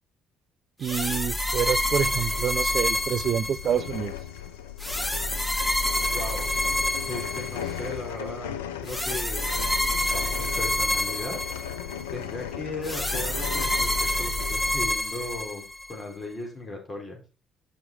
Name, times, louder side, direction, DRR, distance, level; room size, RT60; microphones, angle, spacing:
sound 1, 0.8-4.0 4.8-7.9 8.9-12.0 12.8-15.9, left 1 dB, 10° left, 1.5 m, -28 dB
voice 1, 0.8-4.1, right 8 dB, 55° right, 0.4 m, -27 dB
sound 2, 1.6-14.8, left 10 dB, 85° left, 0.6 m, -37 dB
voice 2, 6.1-6.5 7.1-9.4 10.1-11.4 12.1-13.9 14.2-17.2, left 2 dB, 35° left, 4.3 m, -36 dB
7.3 x 6.2 x 4.7 m
hypercardioid pair, 50°, 0 cm